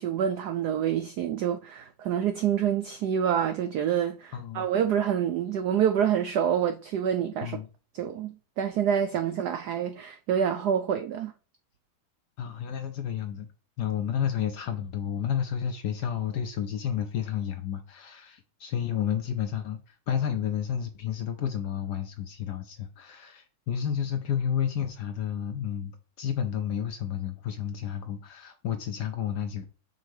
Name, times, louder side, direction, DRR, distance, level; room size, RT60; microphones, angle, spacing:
voice 1, 0.0-7.6 7.9-11.3, right 9 dB, 80° right, 0.9 m, -27 dB
voice 2, 4.3-4.7 7.4-7.7 12.4-13.5 13.8-29.7, left 9 dB, 70° left, 1.0 m, -31 dB
5.5 x 3.9 x 4.7 m
omnidirectional pair, 2.3 m